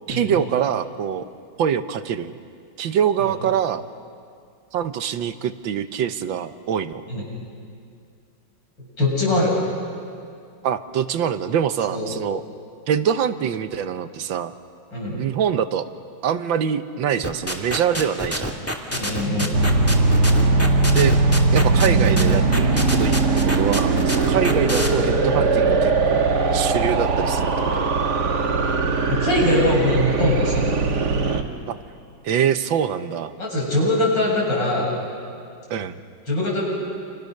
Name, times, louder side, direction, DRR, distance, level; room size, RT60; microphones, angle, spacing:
voice 1, 0.1-1.2 1.6-2.4 2.8-3.9 4.7-7.0 10.6-12.4 12.9-14.5 15.2-15.9 16.2-18.5 20.9-21.1 21.5-26.3 26.5-27.9 31.7-31.8 32.2-33.3 35.7-36.0, right 8 dB, 75° right, 11 dB, 1.6 m, -24 dB
voice 2, 9.0-9.5 11.9-12.1 14.9-15.2 18.9-19.5 24.3-24.5 29.1-30.7 33.4-35.0 36.3-36.7, left 1 dB, 65° left, -4 dB, 8.7 m, -22 dB
sound 1, 17.2-24.9, left 1 dB, 5° left, 2.3 m, -26 dB
sound 2, 19.5-31.4, right 3 dB, 55° right, 2.1 m, -20 dB
28.5 x 28.0 x 6.6 m, 2.3 s
omnidirectional pair, 2.2 m